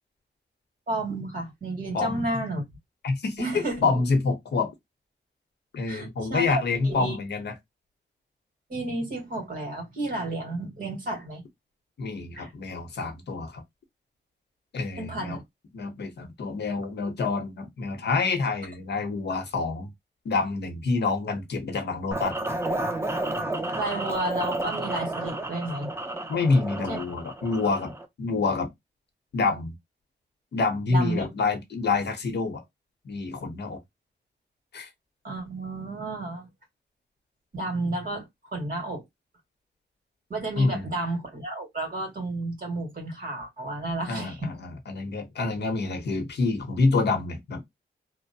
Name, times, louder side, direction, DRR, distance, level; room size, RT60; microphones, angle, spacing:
voice 1, 0.9-2.6 3.4-3.9 5.9-7.2 8.7-11.4 12.4-12.5 15.0-15.4 23.8-25.9 26.9-27.0 30.9-31.3 35.2-36.5 37.5-39.0 40.3-44.5, right 2 dB, 50° right, 1.8 m, -31 dB
voice 2, 1.9-2.2 3.0-4.7 5.7-7.5 12.0-13.6 14.7-15.4 15.7-19.9 20.2-22.4 26.3-27.9 28.2-28.7 29.3-29.7 30.5-32.6 33.0-33.8 34.7-34.9 40.6-40.9 44.1-47.6, left 3 dB, 65° left, 0.9 m, -27 dB
sound 1, 22.1-28.1, right 2 dB, 15° right, 0.5 m, -31 dB
2.9 x 2.1 x 2.7 m
wide cardioid pair, 125°, 19 cm